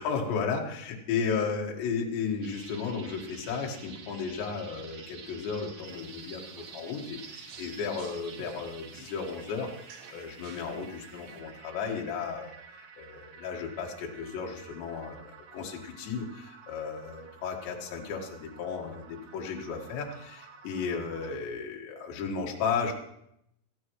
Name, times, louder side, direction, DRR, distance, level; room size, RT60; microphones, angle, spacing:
voice 1, 0.0-22.9, left 5 dB, 65° left, 0 dB, 3.6 m, -34 dB
sound 1, 2.4-21.3, right 6 dB, 90° right, 1.8 m, -50 dB
sound 2, 5.9-11.4, right 4 dB, 65° right, 2.6 m, -55 dB
19.5 x 14.0 x 3.1 m, 0.77 s
omnidirectional pair, 5.9 m